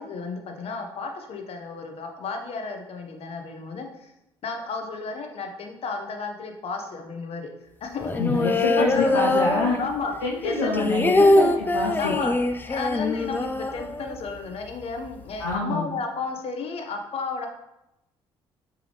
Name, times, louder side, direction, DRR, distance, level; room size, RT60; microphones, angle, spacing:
voice 1, 0.0-4.1 4.4-7.5 7.8-8.1 8.8-9.3 9.8-10.1 10.4-11.0 12.0-12.3 12.6-17.5, left 4 dB, 45° left, 4 dB, 0.8 m, -32 dB
sound 1, 8.0-10.1 10.4-14.4 14.7-14.8 15.0-15.6, left 2 dB, 15° left, 0.4 m, -23 dB
voice 2, 8.2-9.8 10.2-12.1 15.4-15.9, left 3 dB, 75° left, -1 dB, 0.4 m, -26 dB
4.6 x 3.4 x 3.3 m, 0.90 s
figure-of-eight pair, 50°, 14 cm